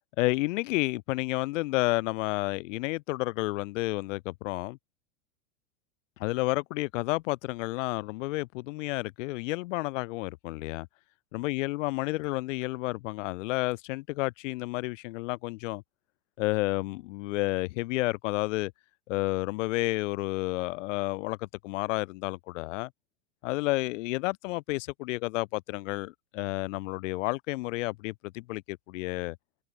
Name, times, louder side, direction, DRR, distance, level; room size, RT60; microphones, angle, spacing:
voice 1, 0.2-4.8 6.2-10.9 11.3-15.8 16.4-18.7 19.1-22.9 23.4-29.4, left 21 dB, 60° left, 4.8 m, -31 dB
hypercardioid pair, 105°, 42 cm